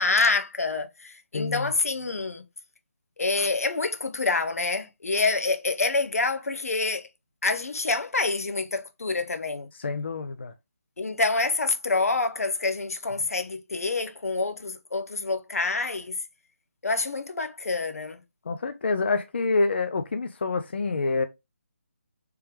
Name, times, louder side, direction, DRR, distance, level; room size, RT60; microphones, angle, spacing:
voice 1, 0.0-2.4 3.2-7.1 7.4-9.7 11.0-16.2 16.8-18.2, left 3 dB, 85° left, 0.7 m, -27 dB
voice 2, 1.3-1.7 9.8-10.5 18.5-21.3, left 3 dB, 50° left, 0.4 m, -27 dB
3.3 x 3.1 x 3.2 m
hypercardioid pair, 170°, 8 cm